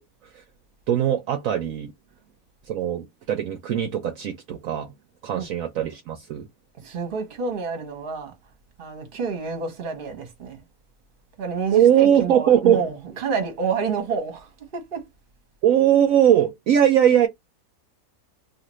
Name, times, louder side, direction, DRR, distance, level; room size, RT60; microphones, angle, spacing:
voice 1, 0.9-1.9 2.7-4.9 5.2-6.5 11.7-12.8 15.6-17.3, right 10 dB, 70° right, 0.9 m, -20 dB
voice 2, 6.8-8.3 8.8-10.6 11.4-15.1, right 5 dB, 40° right, 1.0 m, -29 dB
2.7 x 2.5 x 3.0 m
omnidirectional pair, 1.7 m